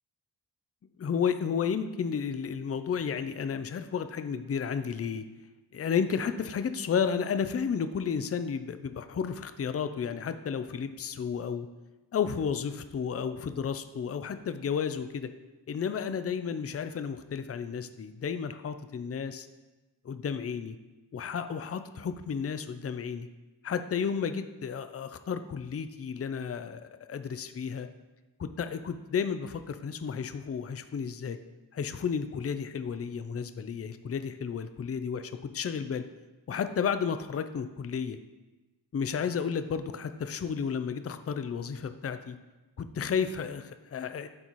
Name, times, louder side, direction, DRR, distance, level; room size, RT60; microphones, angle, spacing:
voice 1, 1.0-5.2 5.7-11.7 12.1-15.3 15.7-19.5 20.0-20.8 21.1-23.3 23.6-26.8 27.1-27.9 28.4-31.4 31.7-36.0 36.5-38.2 38.9-42.4 42.8-44.3, left 6 dB, 35° left, 10 dB, 0.5 m, -32 dB
12.0 x 4.1 x 3.1 m, 1.1 s
cardioid pair, 65°, 41 cm